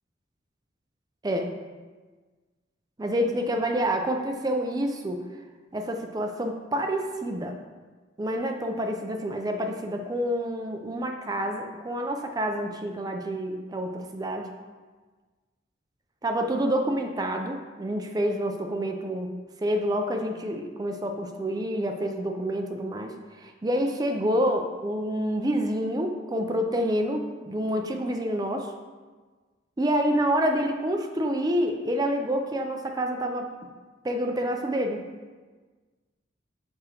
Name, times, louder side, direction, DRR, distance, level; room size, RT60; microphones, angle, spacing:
voice 1, 1.2-1.5 3.0-5.2 5.7-7.6 8.2-14.5 16.2-28.7 29.8-33.5 34.0-35.0, equal, 20° right, 4 dB, 0.4 m, -28 dB
6.7 x 5.0 x 2.8 m, 1.4 s
head